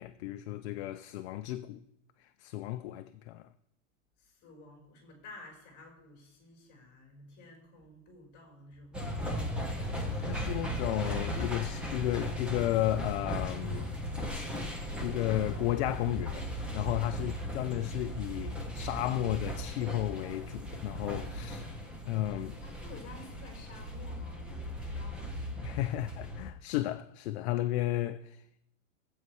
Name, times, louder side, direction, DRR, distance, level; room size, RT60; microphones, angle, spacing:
voice 1, 0.0-1.8 2.2-3.5 10.2-13.9 14.3-14.5 15.0-16.5 16.7-21.7 22.1-22.6 25.6-28.4, left 14 dB, 50° left, 0.6 m, -33 dB
voice 2, 4.2-9.4 17.2-18.1 22.6-25.5, left 2 dB, 25° left, 4.2 m, -53 dB
sound 1, 8.9-26.5, equal, 5° right, 0.4 m, -37 dB
15.5 x 8.2 x 4.7 m
supercardioid pair, 160°, 41 cm